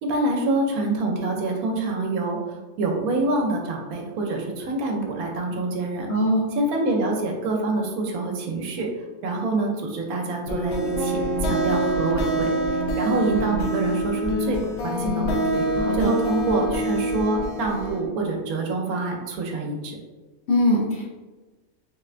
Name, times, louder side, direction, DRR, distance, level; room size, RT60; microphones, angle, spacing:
voice 1, 0.0-6.1 6.5-8.9 9.2-15.7 15.9-20.0, right 2 dB, 80° right, 1 dB, 1.0 m, -26 dB
voice 2, 6.1-6.5 15.8-16.1 20.5-21.0, equal, 65° left, -3 dB, 0.7 m, -21 dB
sound 1, 10.5-18.0, right 1 dB, 90° left, 1.1 m, -25 dB
3.8 x 2.1 x 2.4 m, 1.2 s
omnidirectional pair, 1.5 m